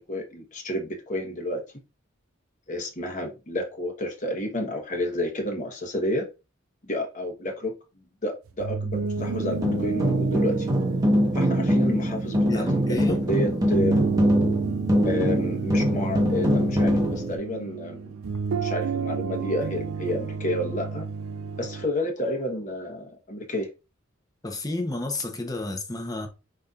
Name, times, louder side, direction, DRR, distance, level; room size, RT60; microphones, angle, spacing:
voice 1, 0.1-1.6 2.7-6.3 6.9-7.7 8.2-10.7 11.3-14.1 15.0-18.1 18.6-21.1 21.6-23.7, left 1 dB, 35° left, 1.1 m, -30 dB
sound 1, 8.5-21.8, right 5 dB, 90° right, 0.4 m, -31 dB
sound 2, 9.2-17.4, equal, 20° right, 1.1 m, -23 dB
voice 2, 12.5-13.2 24.4-26.3, left 2 dB, 20° left, 0.8 m, -31 dB
5.2 x 4.0 x 2.4 m
head